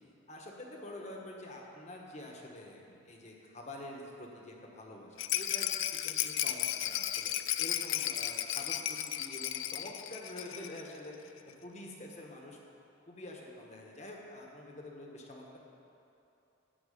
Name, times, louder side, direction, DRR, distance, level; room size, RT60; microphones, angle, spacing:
voice 1, 0.3-11.3 11.6-12.6 13.1-15.6, left 1 dB, 35° left, 0 dB, 1.2 m, -47 dB
Rattle, 5.2-10.9 11.1-11.2 11.5-11.6, left 12 dB, 75° left, 0.4 m, -34 dB
11.5 x 4.7 x 8.4 m, 2.9 s
head